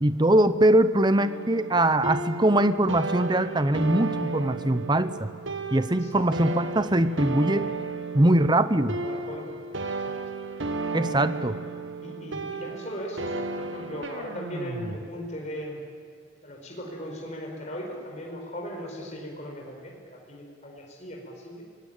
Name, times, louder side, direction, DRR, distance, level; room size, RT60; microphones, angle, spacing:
voice 1, 0.0-5.3 5.7-7.7 8.1-9.0 10.9-11.6, right 1 dB, 20° right, 12 dB, 0.8 m, -22 dB
sound 1, 1.2-15.0, right 3 dB, 70° right, 1.5 m, -34 dB
voice 2, 8.9-9.6 9.9-10.1 11.2-11.5 12.0-15.8 16.4-21.6, equal, 35° left, -1 dB, 5.0 m, -38 dB
24.0 x 19.5 x 9.1 m, 2.2 s
head